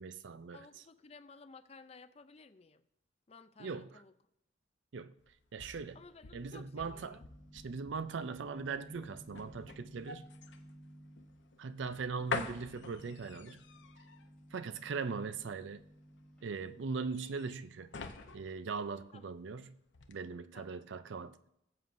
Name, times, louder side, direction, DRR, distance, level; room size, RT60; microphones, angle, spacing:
voice 1, 0.0-0.6 3.6-4.0 4.9-5.1 5.5-6.0 6.3-7.2 7.5-10.3 11.6-13.6 14.5-15.8 16.4-17.9 18.3-19.8 20.1-21.5, right 5 dB, 80° right, 0.5 m, -40 dB
voice 2, 0.5-2.8 3.3-4.1 5.9-7.3 19.1-19.3 20.5-20.8, left 4 dB, 35° left, 0.4 m, -56 dB
sound 1, 5.2-19.6 19.9-20.1, left 5 dB, 80° left, 0.8 m, -47 dB
sound 2, 6.3-16.9, equal, 5° left, 3.4 m, -57 dB
18.5 x 7.5 x 2.6 m
head